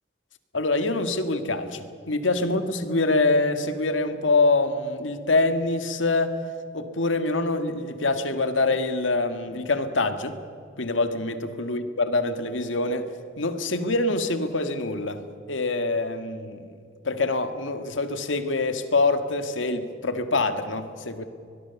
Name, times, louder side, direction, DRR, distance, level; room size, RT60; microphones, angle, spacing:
voice 1, 0.5-6.4 6.7-10.4 10.8-13.1 13.4-15.2 15.5-16.7 17.0-21.3, left 2 dB, 80° left, 9 dB, 1.8 m, -25 dB
23.0 x 21.5 x 7.0 m, 2.4 s
head